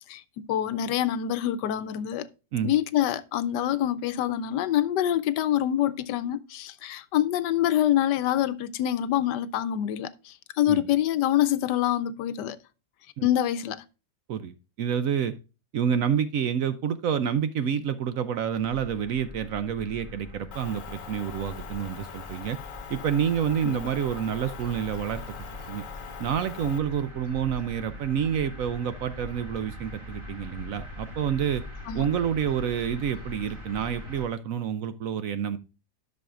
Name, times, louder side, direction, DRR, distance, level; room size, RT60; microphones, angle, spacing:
voice 1, 0.5-2.3 2.6-12.6 13.2-13.8 23.6-23.8 31.9-32.1, left 11 dB, 85° left, 1.3 m, -26 dB
voice 2, 14.3-15.3 15.7-22.6 22.9-25.2 25.7-25.8 26.2-31.6 31.9-35.6, right 8 dB, 65° right, 0.9 m, -28 dB
sound 1, 18.6-34.3, left 1 dB, 20° right, 1.6 m, -42 dB
Motor vehicle (road) / Engine, 20.5-26.8, left 8 dB, 55° left, 1.1 m, -43 dB
12.0 x 6.3 x 2.4 m
omnidirectional pair, 1.8 m